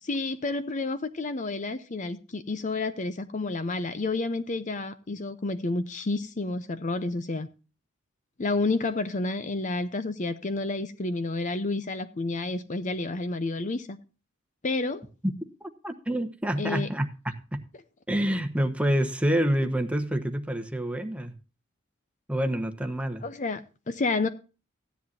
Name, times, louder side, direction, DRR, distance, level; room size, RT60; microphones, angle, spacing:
voice 1, 0.0-7.5 8.4-14.0 14.6-15.0 16.6-16.9 23.2-24.3, left 3 dB, 35° left, 0.6 m, -30 dB
voice 2, 15.6-17.1 17.5-17.6 18.1-21.3 22.3-23.2, equal, 5° right, 1.0 m, -27 dB
15.5 x 10.0 x 2.6 m
head